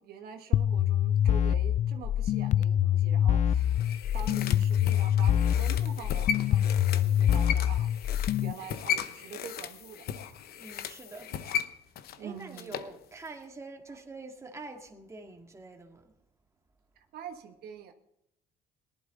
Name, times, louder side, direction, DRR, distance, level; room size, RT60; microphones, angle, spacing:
voice 1, 0.0-3.7 4.1-10.4 12.1-12.7 13.9-14.0 17.1-17.9, right 7 dB, 65° right, 1.3 m, -45 dB
sound 1, 0.5-8.5, left 10 dB, 45° left, 0.4 m, -25 dB
sound 2, 3.5-12.9 13.3-13.4, left 8 dB, 65° left, 0.9 m, -36 dB
voice 2, 10.6-11.4 12.2-16.1, right 3 dB, 15° right, 1.9 m, -45 dB
18.0 x 11.5 x 3.8 m
cardioid pair, 110°, 17 cm